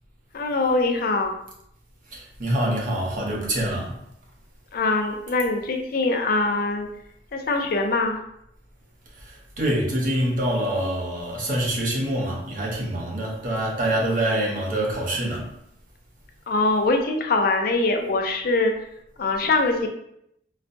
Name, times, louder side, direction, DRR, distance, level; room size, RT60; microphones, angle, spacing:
voice 1, 0.3-1.3 4.7-6.9 7.3-8.2 16.5-18.7 19.2-19.9, left 3 dB, 55° left, 3 dB, 0.5 m, -23 dB
voice 2, 2.1-4.0 9.3-15.5, right 1 dB, 50° right, -2 dB, 0.8 m, -25 dB
4.0 x 2.2 x 2.6 m, 0.76 s
head